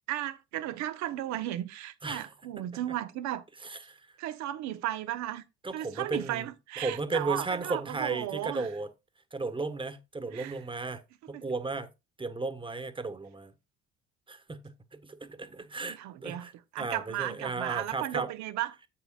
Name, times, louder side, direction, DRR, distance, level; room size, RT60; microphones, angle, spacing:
voice 1, 0.1-3.4 4.2-5.4 5.7-8.7 10.3-10.6 11.3-11.4 15.9-18.7, right 13 dB, 70° right, 1.0 m, -35 dB
voice 2, 3.6-4.0 5.6-6.5 6.8-8.9 9.3-11.0 11.3-11.9 12.2-13.5 14.3-18.3, right 3 dB, 15° right, 1.4 m, -35 dB
10.5 x 7.9 x 2.4 m
hypercardioid pair, 65°, 30 cm